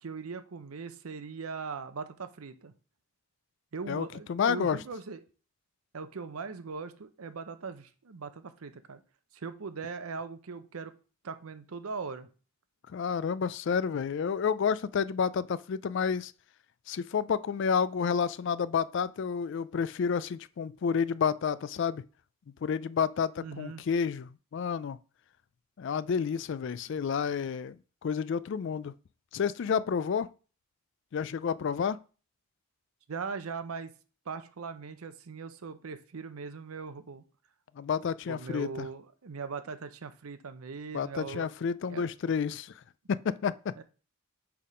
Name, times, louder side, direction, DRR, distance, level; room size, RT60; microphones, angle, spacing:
voice 1, 0.0-2.7 3.7-5.2 5.9-9.0 9.3-10.9 11.2-12.3 23.4-23.8 33.1-33.9 34.3-37.2 38.3-41.5 41.9-42.1 43.8-43.9, right 5 dB, 90° right, 0.7 m, -40 dB
voice 2, 3.9-4.8 12.9-16.3 16.9-22.0 22.6-25.0 25.8-28.9 29.3-30.3 31.1-32.0 37.8-38.9 40.9-42.7 43.1-43.8, left 6 dB, 55° left, 0.3 m, -30 dB
6.7 x 3.5 x 5.0 m
head